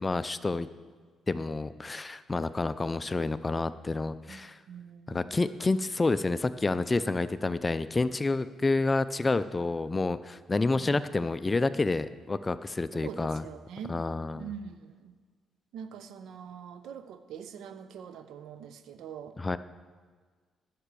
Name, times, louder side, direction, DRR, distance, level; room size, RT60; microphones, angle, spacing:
voice 1, 0.0-0.7 1.3-4.6 5.1-13.4 13.9-14.5 19.4-19.6, left 3 dB, 25° left, 14 dB, 0.4 m, -29 dB
voice 2, 4.7-5.2 12.9-14.0 14.4-15.1 15.7-19.4, right 7 dB, 80° right, 10 dB, 0.7 m, -43 dB
10.0 x 6.0 x 6.8 m, 1.5 s
cardioid pair, 90°, 0 cm